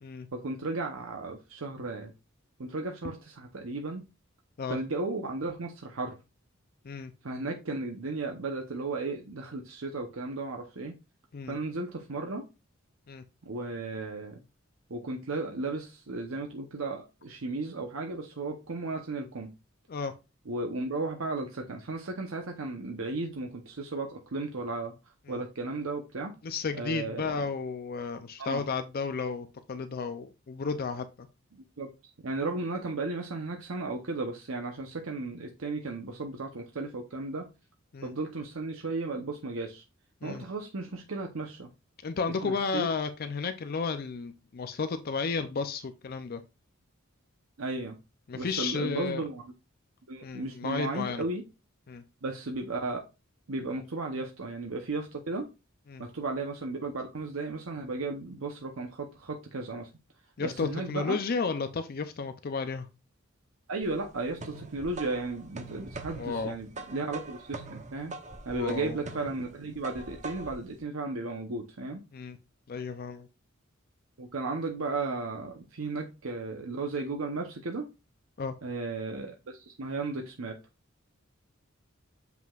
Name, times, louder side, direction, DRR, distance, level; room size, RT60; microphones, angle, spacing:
voice 1, 0.3-2.1 2.6-4.0 4.7-6.1 7.2-10.9 11.5-12.4 13.5-14.4 14.9-19.5 20.5-24.9 25.3-26.3 26.7-27.5 28.4-28.6 31.5-31.9 32.2-37.5 38.0-39.8 40.2-41.7 42.4-42.9 47.6-48.0 48.3-49.5 50.1-51.4 52.2-53.0 53.5-55.5 56.0-59.9 60.4-61.2 63.7-68.1 68.5-72.0 74.2-77.8 78.6-80.6, right 3 dB, 85° right, 3 dB, 0.9 m, -35 dB
voice 2, 26.4-31.1 37.9-38.1 40.2-40.4 42.0-46.4 48.3-49.3 50.2-51.2 51.9-52.0 55.9-56.0 60.4-62.9 66.2-66.5 68.5-69.0 72.1-72.4 72.7-73.3 78.4-78.5, left 4 dB, 50° left, 9 dB, 0.5 m, -33 dB
sound 1, 63.8-70.7, right 3 dB, 35° right, 0.8 m, -43 dB
7.4 x 5.9 x 2.4 m, 0.28 s
head